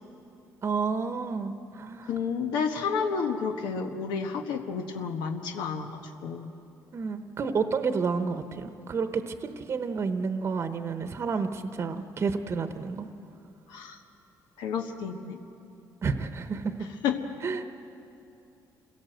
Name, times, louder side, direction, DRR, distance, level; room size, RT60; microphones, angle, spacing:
voice 1, 0.6-2.1 6.9-13.1 16.0-16.7 17.4-17.6, right 5 dB, 40° right, 8 dB, 1.0 m, -30 dB
voice 2, 2.0-6.5 13.7-14.0 14.6-15.4 16.8-17.2, left 6 dB, 90° left, 4 dB, 1.3 m, -31 dB
26.5 x 17.0 x 7.8 m, 2.8 s
cardioid pair, 115°, 7 cm